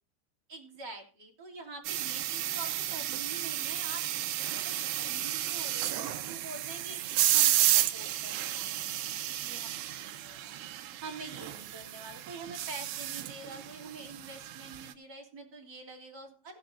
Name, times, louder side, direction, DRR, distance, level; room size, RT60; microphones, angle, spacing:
voice 1, 0.5-7.0 7.3-10.6 11.0-16.6, right 3 dB, 25° right, -2 dB, 3.3 m, -46 dB
sound 1, 1.8-14.9, right 13 dB, 75° right, 2.2 m, -32 dB
16.0 x 11.5 x 2.6 m, 0.40 s
omnidirectional pair, 4.9 m